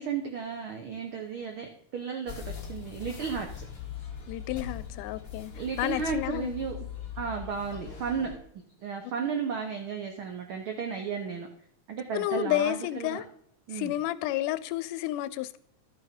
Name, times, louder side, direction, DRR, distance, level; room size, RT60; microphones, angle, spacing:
voice 1, 0.0-3.6 5.5-6.8 7.2-8.3 8.8-11.5 11.9-13.2 13.7-13.9, right 6 dB, 90° right, 1.1 m, -34 dB
sound 1, 2.3-8.4, left 8 dB, 35° left, 1.7 m, -40 dB
voice 2, 4.3-5.5 5.8-6.5 12.1-13.3 13.7-15.6, left 14 dB, 85° left, 2.1 m, -30 dB
12.0 x 6.5 x 5.1 m
omnidirectional pair, 3.6 m